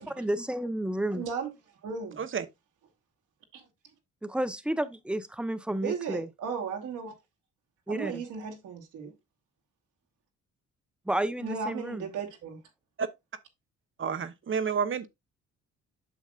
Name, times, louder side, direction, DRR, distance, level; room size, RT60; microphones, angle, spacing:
voice 1, 0.0-1.2 4.2-6.3 7.9-8.2 11.1-12.0, right 1 dB, 5° right, 0.8 m, -31 dB
voice 2, 1.1-2.2 3.5-3.6 5.8-7.1 7.9-9.1 11.4-12.6, right 5 dB, 85° right, 2.3 m, -36 dB
voice 3, 14.0-15.1, right 6 dB, 40° right, 1.0 m, -30 dB
8.7 x 6.3 x 2.4 m
cardioid pair, 90°, 30 cm